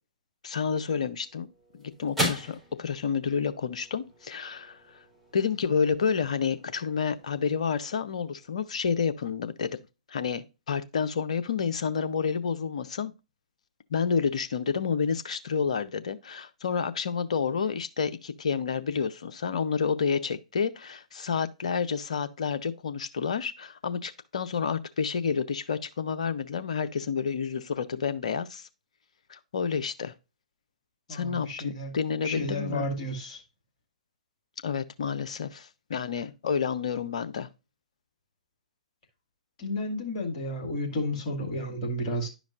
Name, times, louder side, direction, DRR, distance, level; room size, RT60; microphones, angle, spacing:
voice 1, 0.4-1.5 1.7-5.0 5.3-9.8 10.1-13.1 13.9-28.7 29.3-30.1 31.1-32.9 34.6-37.5, left 6 dB, 60° left, 0.7 m, -29 dB
sound 1, 0.9-9.4, equal, ahead, 4.0 m, -39 dB
voice 2, 31.1-31.9 32.2-33.4 39.6-42.3, left 1 dB, 40° left, 2.2 m, -32 dB
10.5 x 5.1 x 2.5 m
figure-of-eight pair, 115°, 4 cm